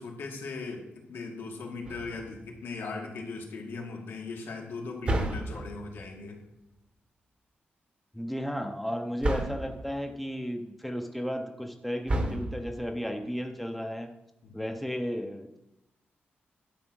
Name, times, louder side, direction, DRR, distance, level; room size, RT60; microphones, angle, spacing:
voice 1, 0.0-6.4 14.4-14.7, left 4 dB, 80° left, 1 dB, 1.9 m, -39 dB
sound 1, 1.8-2.5 5.0-6.0 9.2-9.8 12.1-12.9, right 1 dB, 30° right, 1.0 m, -31 dB
voice 2, 8.1-14.1 14.5-15.6, equal, ahead, 4 dB, 0.6 m, -34 dB
11.5 x 4.9 x 6.2 m, 0.90 s
wide cardioid pair, 175°, 4 cm